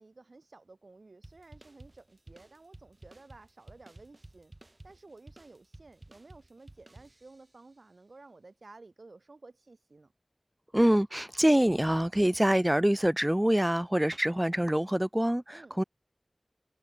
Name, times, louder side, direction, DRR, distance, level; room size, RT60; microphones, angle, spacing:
voice 1, 0.0-4.5 4.8-10.1 15.5-15.7, right 3 dB, 90° right, 2.9 m, -54 dB
sound 1, 1.2-7.6, right 2 dB, 45° right, 2.5 m, -54 dB
voice 2, 10.7-15.8, right 1 dB, 15° right, 0.4 m, -25 dB
wide cardioid pair, 50°, 0 cm